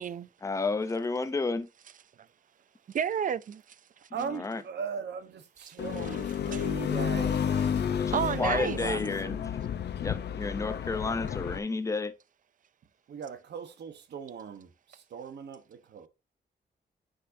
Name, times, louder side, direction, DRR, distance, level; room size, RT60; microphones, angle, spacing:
voice 1, 0.4-1.7 4.2-4.6 8.0-9.4 10.0-12.1, left 3 dB, 20° left, 0.6 m, -31 dB
voice 2, 2.9-3.6 5.7-5.8 6.0-6.2 6.5-6.7 8.1-8.8, right 8 dB, 50° right, 0.4 m, -31 dB
voice 3, 4.1-8.0 8.3-9.4 13.1-16.1, right 6 dB, 85° right, 1.1 m, -39 dB
sound 1, 5.8-11.6, left 8 dB, 80° left, 0.7 m, -31 dB
10.0 x 5.4 x 2.7 m
wide cardioid pair, 170°, 17 cm